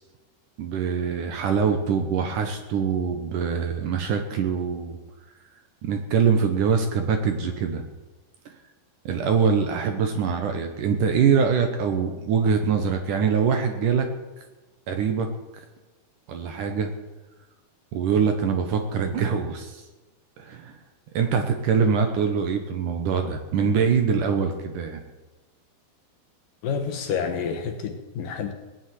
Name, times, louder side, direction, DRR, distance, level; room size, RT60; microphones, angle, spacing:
voice 1, 0.6-5.0 5.8-7.8 8.5-8.6 9.1-14.1 14.9-15.3 16.3-16.9 17.9-19.8 20.4-20.7 21.1-25.0, right 6 dB, 65° right, 6 dB, 2.4 m, -23 dB
voice 2, 26.6-28.5, left 6 dB, 65° left, 5 dB, 2.7 m, -29 dB
18.5 x 7.3 x 9.4 m, 1.2 s
omnidirectional pair, 4.6 m